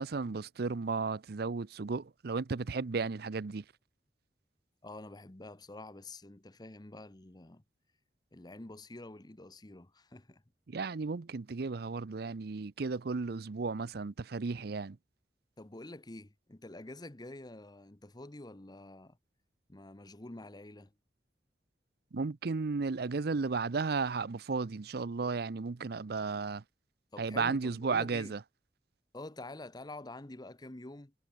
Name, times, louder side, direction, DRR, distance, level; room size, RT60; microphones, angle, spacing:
voice 1, 0.0-3.6 10.7-15.0 22.1-26.6 27.2-28.4, right 4 dB, 60° right, 0.6 m, -34 dB
voice 2, 4.8-7.6 8.3-10.4 15.6-19.2 19.7-20.9 27.1-28.4 29.1-31.1, left 2 dB, 25° left, 1.0 m, -47 dB
head